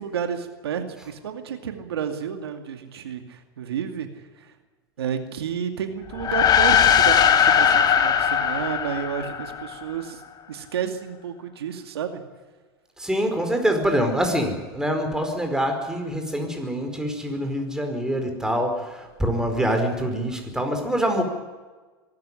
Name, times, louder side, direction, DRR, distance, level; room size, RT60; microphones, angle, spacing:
voice 1, 0.0-4.5 5.0-10.2 10.5-12.2, right 8 dB, 85° right, 6 dB, 2.4 m, -31 dB
sound 1, 6.1-9.8, left 8 dB, 30° left, 2.3 m, -19 dB
voice 2, 13.0-21.2, equal, 5° right, 5 dB, 4.8 m, -25 dB
24.0 x 13.5 x 9.9 m, 1.3 s
hypercardioid pair, 110°, 13 cm